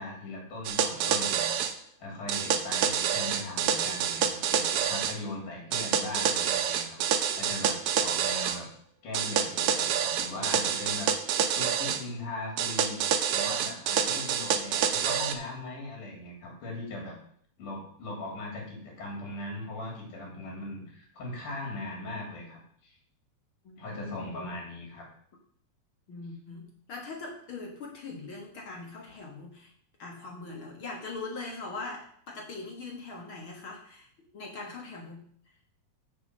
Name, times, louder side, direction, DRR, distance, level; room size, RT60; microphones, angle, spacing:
voice 1, 0.0-7.0 7.3-8.7 9.0-11.1 11.5-13.0 13.3-17.1 17.6-22.9 23.8-25.0, left 2 dB, 80° left, -1 dB, 4.5 m, -39 dB
sound 1, 0.6-1.7 2.3-5.2 5.7-8.6 9.1-12.0 12.6-15.3, right 8 dB, 85° right, 1.2 m, -27 dB
voice 2, 23.6-24.5 26.1-29.7 30.0-34.1 34.3-35.2, left 3 dB, 50° left, 0 dB, 1.9 m, -41 dB
7.0 x 7.0 x 6.5 m, 0.62 s
omnidirectional pair, 3.6 m